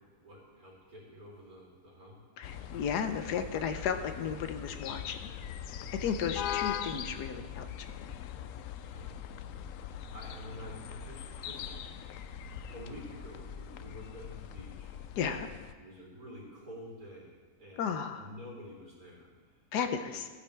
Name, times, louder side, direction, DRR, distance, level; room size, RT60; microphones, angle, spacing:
voice 1, 0.1-2.2 8.8-9.1 10.1-11.7 12.7-15.0 15.8-19.6 20.1-20.2, equal, 65° right, -7 dB, 4.1 m, -49 dB
voice 2, 2.4-5.3 6.0-7.9 15.2-15.5 17.8-18.3 19.7-20.3, left 7 dB, 85° left, 8 dB, 1.4 m, -34 dB
sound 1, 2.4-15.7, left 9 dB, 70° left, 0.8 m, -41 dB
17.0 x 9.5 x 3.4 m, 1.4 s
omnidirectional pair, 1.7 m